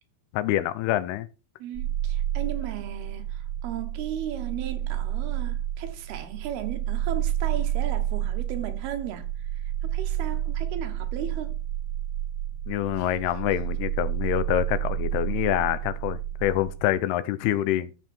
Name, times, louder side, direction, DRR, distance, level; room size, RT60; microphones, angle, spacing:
voice 1, 0.3-1.3 12.7-17.9, left 13 dB, 80° left, 2.7 m, -26 dB
voice 2, 1.6-9.3 9.6-11.6 13.0-13.1, right 10 dB, 75° right, 3.1 m, -36 dB
sound 1, 1.7-16.9, right 12 dB, 30° right, 3.5 m, -30 dB
13.5 x 5.6 x 4.4 m
omnidirectional pair, 4.7 m